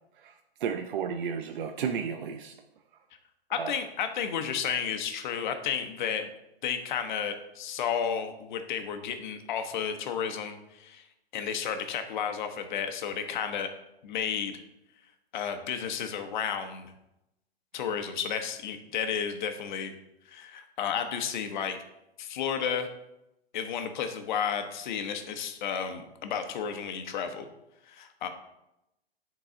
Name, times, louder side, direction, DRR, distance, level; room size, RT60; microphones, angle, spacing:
voice 1, 0.6-2.5 3.6-3.7, right 7 dB, 55° right, 6 dB, 0.6 m, -32 dB
voice 2, 3.5-6.3 6.6-11.1 11.3-13.7 14.0-14.6 15.3-16.9 17.7-19.9 20.3-21.8 22.2-22.9 23.5-27.5 27.9-28.3, left 7 dB, 50° left, 7 dB, 0.9 m, -32 dB
9.4 x 4.0 x 3.7 m, 0.88 s
hypercardioid pair, 135°, 31 cm